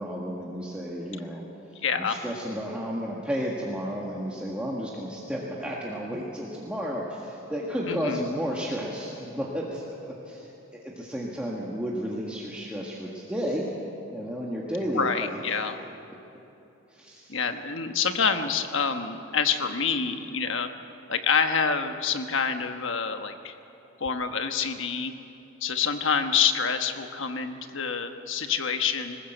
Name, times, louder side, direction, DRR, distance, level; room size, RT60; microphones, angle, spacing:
voice 1, 0.0-1.4 1.9-13.7 14.1-15.4 16.9-17.4 28.5-28.6, equal, 5° right, -4 dB, 1.7 m, -32 dB
voice 2, 1.8-2.2 7.9-8.2 14.9-15.8 17.3-20.7 21.1-23.5 24.0-25.1 25.6-29.2, left 6 dB, 65° left, 7 dB, 1.3 m, -27 dB
20.5 x 19.5 x 7.9 m, 3.0 s
head